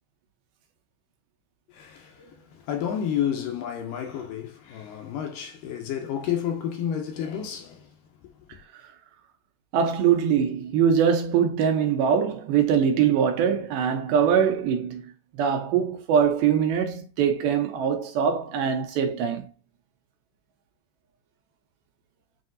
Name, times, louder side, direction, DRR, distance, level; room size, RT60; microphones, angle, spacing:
voice 1, 1.7-7.9 8.5-8.6, left 9 dB, 75° left, 2.2 m, -31 dB
voice 2, 9.7-15.1 15.4-19.5, right 7 dB, 85° right, 2.7 m, -22 dB
7.6 x 2.7 x 2.5 m
omnidirectional pair, 4.2 m